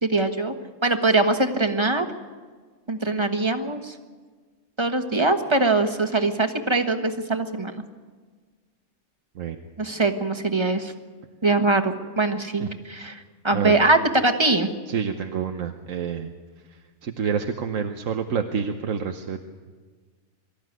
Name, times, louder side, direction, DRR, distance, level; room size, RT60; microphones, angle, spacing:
voice 1, 0.0-0.5 0.8-2.0 2.9-3.9 4.8-7.7 9.8-10.9 11.4-14.7, right 2 dB, 20° right, 6 dB, 1.4 m, -22 dB
voice 2, 14.9-16.3 16.7-19.4, right 7 dB, 80° right, 5 dB, 1.4 m, -28 dB
24.5 x 14.0 x 9.3 m, 1.4 s
omnidirectional pair, 1.4 m